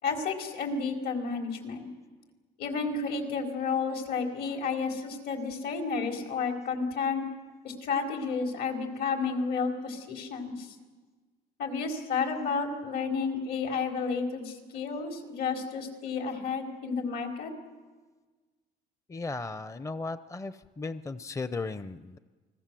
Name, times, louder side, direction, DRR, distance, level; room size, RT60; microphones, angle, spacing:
voice 1, 0.0-1.9 2.6-7.2 7.6-10.7 11.6-17.5, left 5 dB, 70° left, 3 dB, 4.7 m, -31 dB
voice 2, 19.1-22.2, left 3 dB, 20° left, 12 dB, 0.7 m, -36 dB
29.5 x 21.5 x 7.7 m, 1.4 s
cardioid pair, 110°, 17 cm